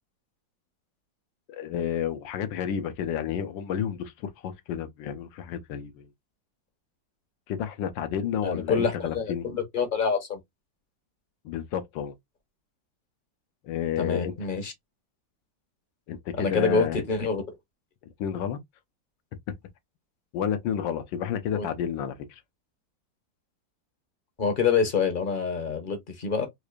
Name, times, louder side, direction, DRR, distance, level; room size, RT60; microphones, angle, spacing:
voice 1, 1.5-6.1 7.5-9.5 11.4-12.1 13.6-14.3 16.1-17.0 18.2-18.6 20.3-22.4, left 9 dB, 75° left, 1.4 m, -31 dB
voice 2, 8.4-10.4 14.0-14.7 16.4-17.6 21.5-21.7 24.4-26.5, left 5 dB, 40° left, 0.8 m, -26 dB
4.8 x 2.5 x 2.3 m
omnidirectional pair, 2.0 m